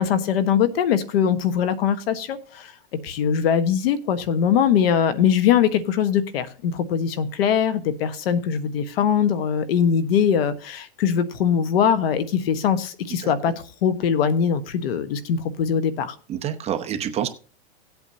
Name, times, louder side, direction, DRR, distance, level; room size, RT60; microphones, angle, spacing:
voice 1, 0.0-2.7 3.0-13.5 13.8-16.1, left 8 dB, 70° left, 12 dB, 1.4 m, -21 dB
voice 2, 16.3-17.3, right 9 dB, 20° right, 6 dB, 0.8 m, -27 dB
17.5 x 8.1 x 2.8 m, 0.39 s
supercardioid pair, 150°, 31 cm